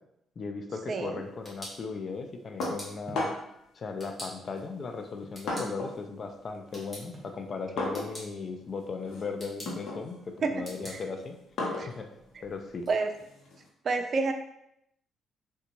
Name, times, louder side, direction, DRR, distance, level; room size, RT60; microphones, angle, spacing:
voice 1, 0.4-3.3 3.7-11.4 11.8-12.1 12.4-12.9, left 4 dB, 45° left, 5 dB, 0.4 m, -37 dB
voice 2, 0.9-1.2 10.4-10.5 10.9-11.0 11.8-11.9 12.9-13.1 13.8-14.3, right 4 dB, 50° right, 6 dB, 0.4 m, -28 dB
sound 1, 1.1-12.9, equal, 10° left, 1.4 m, -50 dB
sound 2, 2.6-3.6 4.5-6.1 6.4-13.7, left 2 dB, 75° left, 0.8 m, -37 dB
sound 3, 3.1-3.4 4.3-5.5 7.1-7.4, right 2 dB, 25° right, 0.8 m, -47 dB
3.7 x 2.2 x 2.9 m, 0.78 s
cardioid pair, 90°, 0 cm